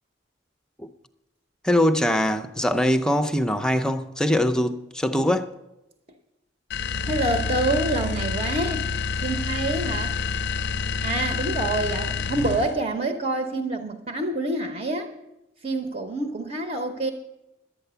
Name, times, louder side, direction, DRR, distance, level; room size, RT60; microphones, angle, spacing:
voice 1, 1.6-5.5, left 1 dB, 5° left, 0.5 m, -22 dB
sound 1, 6.7-12.8, left 5 dB, 60° left, 0.4 m, -28 dB
voice 2, 7.0-8.9 9.2-10.2 11.0-15.1 15.6-17.1, right 2 dB, 40° right, 0.9 m, -27 dB
11.5 x 9.1 x 6.9 m
head